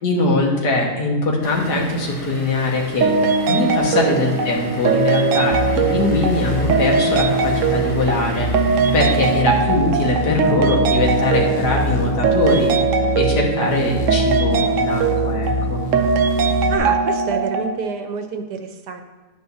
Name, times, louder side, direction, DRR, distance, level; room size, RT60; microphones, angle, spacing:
voice 1, 0.0-8.5 8.9-12.7 13.1-15.8, left 2 dB, 75° left, -1 dB, 2.1 m, -21 dB
Vehicle / Engine, 1.4-9.4, right 1 dB, 25° left, 2.7 m, -35 dB
sound 1, 3.0-17.8, right 4 dB, 65° right, 0.9 m, -20 dB
sound 2, 5.5-16.8, equal, 45° left, 0.9 m, -26 dB
voice 2, 16.7-19.0, right 5 dB, 80° right, 7 dB, 1.4 m, -27 dB
10.5 x 8.7 x 2.7 m, 1.3 s
omnidirectional pair, 1.8 m